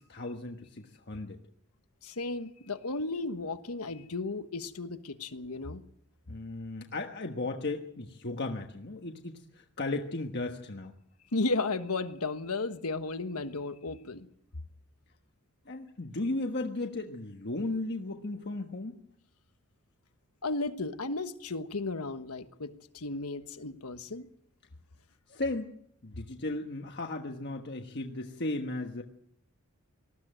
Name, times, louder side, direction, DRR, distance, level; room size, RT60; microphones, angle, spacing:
voice 1, 0.0-1.4 6.3-11.0 15.7-19.0 25.3-25.7 26.0-29.0, left 2 dB, 50° left, 3 dB, 1.4 m, -35 dB
voice 2, 2.0-5.8 11.3-14.3 20.4-24.3, left 3 dB, 85° left, 10 dB, 1.3 m, -34 dB
19.5 x 14.5 x 9.1 m, 0.73 s
head